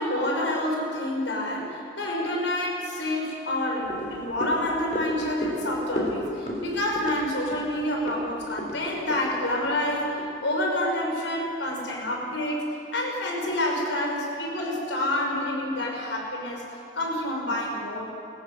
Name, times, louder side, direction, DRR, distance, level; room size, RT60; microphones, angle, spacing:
voice 1, 0.0-16.6 16.9-18.0, left 1 dB, 85° left, -1 dB, 5.8 m, -28 dB
sound 1, 3.8-10.3 10.7-10.8, left 1 dB, 40° left, 3.5 m, -34 dB
20.0 x 14.5 x 9.7 m, 2.9 s
head